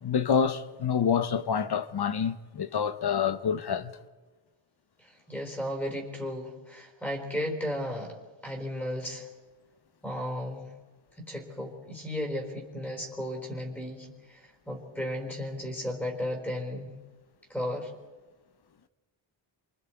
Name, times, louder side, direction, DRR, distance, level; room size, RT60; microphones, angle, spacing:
voice 1, 0.0-3.9, left 7 dB, 50° left, 1.0 m, -27 dB
voice 2, 5.0-8.2 8.4-9.3 10.0-10.7 11.2-16.9 17.5-17.9, left 1 dB, 5° left, 4.0 m, -34 dB
28.5 x 24.5 x 4.6 m
wide cardioid pair, 135°, 49 cm